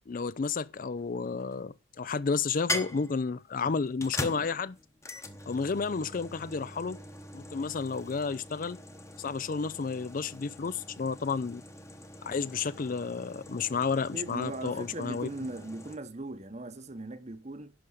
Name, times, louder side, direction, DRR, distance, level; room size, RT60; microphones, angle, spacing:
voice 1, 0.1-4.8 5.5-7.0 7.3-8.8 9.2-11.6 12.2-15.3, left 5 dB, 40° left, 0.4 m, -31 dB
sound 1, 1.0-1.6 2.7-16.0, left 1 dB, 15° left, 1.0 m, -42 dB
voice 2, 14.1-17.7, right 2 dB, 35° right, 0.9 m, -39 dB
11.0 x 5.2 x 6.3 m
head